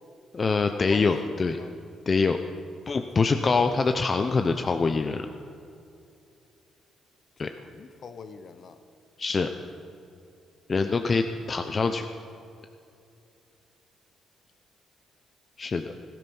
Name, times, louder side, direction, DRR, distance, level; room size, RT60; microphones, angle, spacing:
voice 1, 0.3-1.6 2.1-2.4 2.9-5.3 7.4-7.5 9.2-9.5 10.7-12.0 15.6-15.9, left 4 dB, 35° left, 7 dB, 0.7 m, -24 dB
voice 2, 0.9-1.7 2.9-3.0 7.7-8.8, left 5 dB, 50° left, 10 dB, 1.0 m, -42 dB
17.5 x 12.5 x 5.6 m, 2.6 s
cardioid pair, 90°, 0 cm